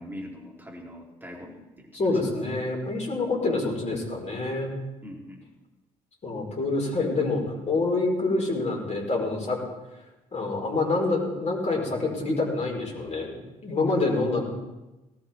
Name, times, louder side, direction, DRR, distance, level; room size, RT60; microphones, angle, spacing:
voice 1, 0.0-2.3 5.0-5.5, equal, 10° right, -2 dB, 3.7 m, -42 dB
voice 2, 1.9-4.7 6.2-9.6 10.3-14.4, left 3 dB, 35° left, 0 dB, 5.0 m, -27 dB
18.5 x 8.4 x 4.6 m, 1.0 s
figure-of-eight pair, 50°, 19 cm